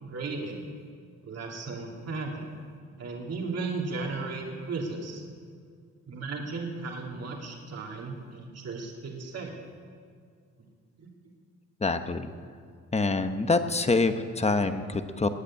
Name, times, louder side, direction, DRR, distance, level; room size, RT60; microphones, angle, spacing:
voice 1, 0.0-0.6 1.2-2.5 3.0-5.2 6.1-9.6 11.0-11.1, right 3 dB, 55° right, 0 dB, 2.7 m, -35 dB
voice 2, 11.8-12.3 12.9-15.3, left 3 dB, 20° left, 9 dB, 1.0 m, -26 dB
19.0 x 6.7 x 9.8 m, 2.2 s
cardioid pair, 90°, 30 cm